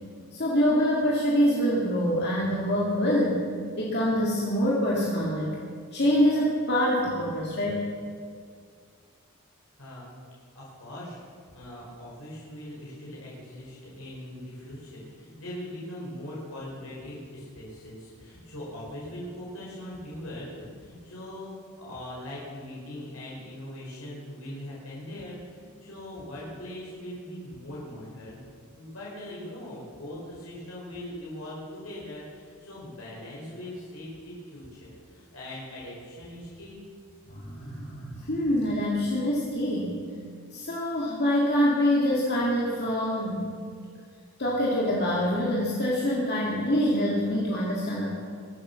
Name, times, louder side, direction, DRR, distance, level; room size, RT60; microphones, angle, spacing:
voice 1, 0.3-3.4 3.8-5.5 5.9-7.8 37.3-40.0 40.5-43.5 44.4-48.1, equal, 50° left, -5 dB, 2.3 m, -25 dB
voice 2, 9.8-10.1 10.5-28.4 28.7-36.8, left 1 dB, 75° left, -6 dB, 4.5 m, -41 dB
22.5 x 8.6 x 7.0 m, 2.2 s
head